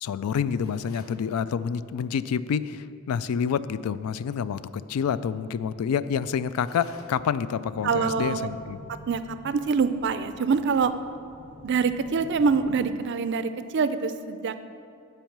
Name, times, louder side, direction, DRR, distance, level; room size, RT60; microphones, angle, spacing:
voice 1, 0.0-8.8, left 7 dB, 85° left, 15 dB, 0.3 m, -28 dB
sound 1, 0.6-1.2 6.5-7.4, left 3 dB, 65° left, 0.9 m, -51 dB
sound 2, 7.7-12.9, left 1 dB, 25° left, 0.5 m, -46 dB
voice 2, 7.8-8.5 9.1-10.9 11.6-14.5, right 5 dB, 55° right, 11 dB, 0.4 m, -25 dB
9.1 x 4.5 x 7.2 m, 2.6 s
head